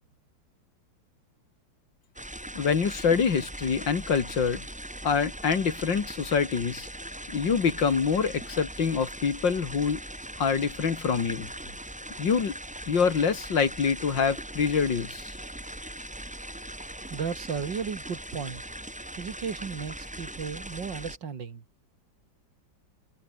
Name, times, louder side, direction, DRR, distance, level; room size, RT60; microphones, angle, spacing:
sound 1, 2.2-21.2, right 1 dB, 5° right, 1.1 m, -40 dB
voice 1, 2.5-4.7 5.0-6.9 7.3-10.0 10.4-11.5 12.2-12.6 12.9-15.3, left 6 dB, 80° left, 3.0 m, -25 dB
voice 2, 17.1-18.6 19.2-21.6, right 6 dB, 75° right, 2.9 m, -34 dB
omnidirectional pair, 2.0 m